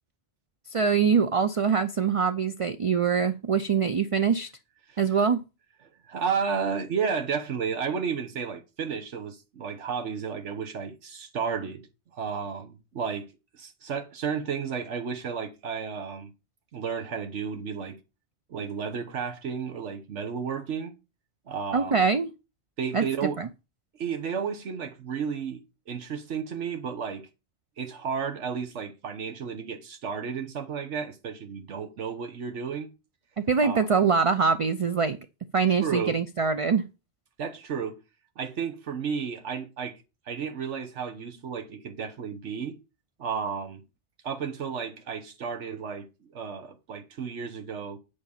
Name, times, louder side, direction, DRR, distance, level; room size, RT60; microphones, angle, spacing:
voice 1, 0.7-4.5 5.0-5.4 21.7-22.3 22.9-23.0 23.4-23.5 33.5-35.2 35.5-36.9, right 6 dB, 45° right, 0.4 m, -23 dB
voice 2, 6.1-16.3 16.7-18.0 18.5-20.9 21.5-22.0 22.8-23.4 23.9-27.3 27.8-32.9 33.6-33.9 35.8-36.2 37.4-38.0 38.4-42.8 43.2-43.8 44.2-48.0, right 6 dB, 85° right, 1.3 m, -32 dB
8.7 x 5.0 x 7.1 m
omnidirectional pair, 1.2 m